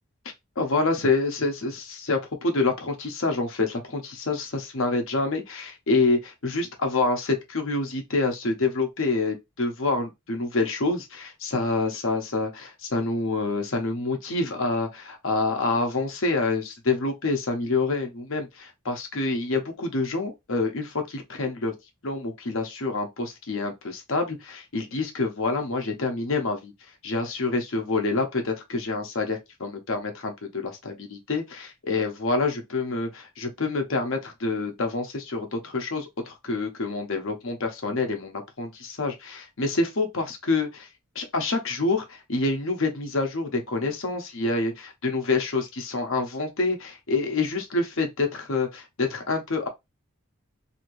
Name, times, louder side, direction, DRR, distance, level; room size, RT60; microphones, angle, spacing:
voice 1, 0.6-21.8 22.0-26.7 27.0-40.9 41.1-49.7, left 3 dB, 60° left, 0.8 m, -27 dB
3.1 x 2.8 x 2.6 m
head